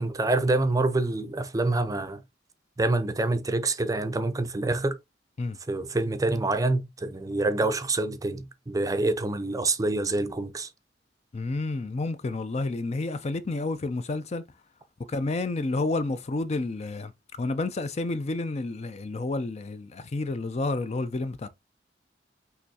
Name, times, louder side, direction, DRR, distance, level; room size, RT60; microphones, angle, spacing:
voice 1, 0.0-2.2 2.8-5.0 5.7-10.7, right 2 dB, 20° right, 0.5 m, -26 dB
voice 2, 11.3-14.4 15.1-17.1 17.4-21.5, left 2 dB, 40° left, 0.4 m, -30 dB
5.7 x 3.0 x 2.7 m
head